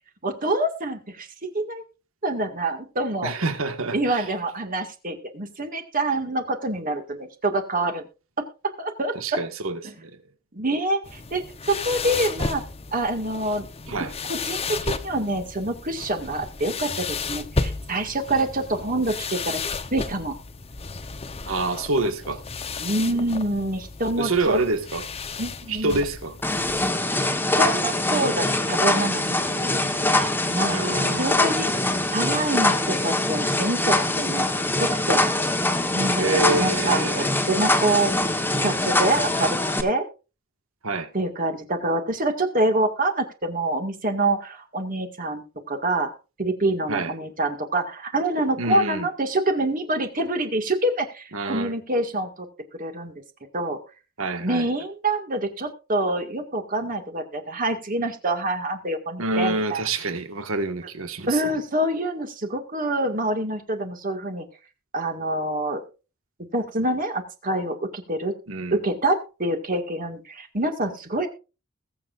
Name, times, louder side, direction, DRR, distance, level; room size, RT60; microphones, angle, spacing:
voice 1, 0.2-1.3 1.5-1.8 2.2-3.3 3.9-8.0 8.8-9.1 9.8-9.9 10.5-12.6 12.9-19.6 19.9-20.4 22.8-24.6 25.4-26.0 27.6-30.8 31.2-31.8 32.1-34.5 34.8-35.3 35.9-38.2 38.6-40.1 41.1-45.4 45.7-46.1 46.4-52.5 52.8-53.1 53.5-53.8 54.4-59.8 61.3-64.5 64.9-65.8 66.5-68.3 68.7-71.3, right 2 dB, 45° right, 2.0 m, -26 dB
voice 2, 3.2-4.3 9.1-10.2 13.9-14.1 21.5-22.4 24.2-25.1 25.7-26.3 30.7-31.3 36.2-37.3 40.8-41.1 46.9-47.1 48.6-49.1 51.3-51.7 54.2-54.7 59.2-61.4 68.5-68.8, right 2 dB, 90° right, 1.7 m, -27 dB
sound 1, 11.0-26.9, left 4 dB, 30° left, 0.9 m, -33 dB
sound 2, 26.4-39.8, left 2 dB, 10° left, 1.2 m, -23 dB
21.0 x 7.4 x 2.5 m
head